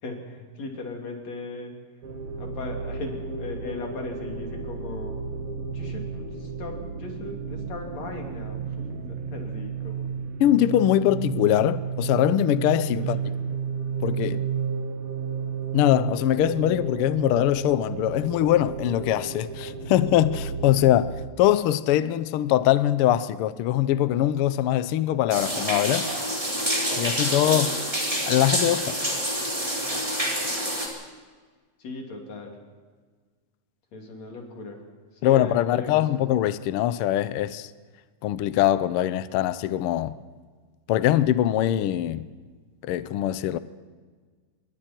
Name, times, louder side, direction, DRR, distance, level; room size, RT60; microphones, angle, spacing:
voice 1, 0.0-1.7 2.4-5.1 5.7-10.1 13.1-13.3 31.8-32.5 33.9-34.8 35.2-36.2, left 2 dB, 65° left, 4.1 m, -38 dB
sound 1, 2.0-21.3, right 6 dB, 55° right, 2.0 m, -32 dB
voice 2, 10.4-13.2 14.0-14.4 15.7-26.1 27.0-27.8 28.3-29.0 35.2-37.7 38.2-40.2 40.9-42.3 42.8-43.6, left 12 dB, 85° left, 1.2 m, -22 dB
sound 2, 25.3-30.9, equal, 10° right, 3.9 m, -27 dB
27.0 x 21.5 x 4.5 m
omnidirectional pair, 3.3 m